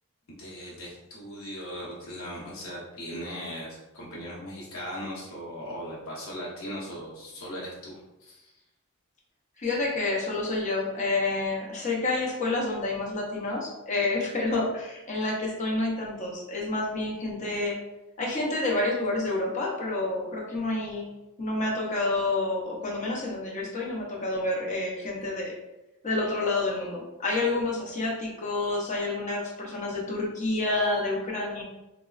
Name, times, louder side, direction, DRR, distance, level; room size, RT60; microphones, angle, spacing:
voice 1, 0.3-7.9 8.2-8.5, equal, 65° left, -6 dB, 0.9 m, -38 dB
voice 2, 9.6-17.8 18.2-21.1 21.4-25.5 26.0-31.6, left 2 dB, 35° left, -2 dB, 0.6 m, -29 dB
3.5 x 2.0 x 2.4 m, 0.99 s
head